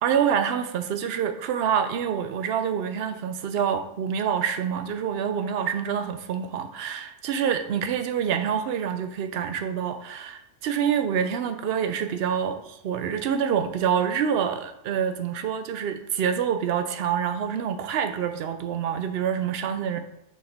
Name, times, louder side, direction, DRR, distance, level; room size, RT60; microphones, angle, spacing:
voice 1, 0.0-20.1, right 8 dB, 65° right, 8 dB, 0.8 m, -26 dB
5.8 x 5.1 x 3.5 m, 0.79 s
omnidirectional pair, 1.2 m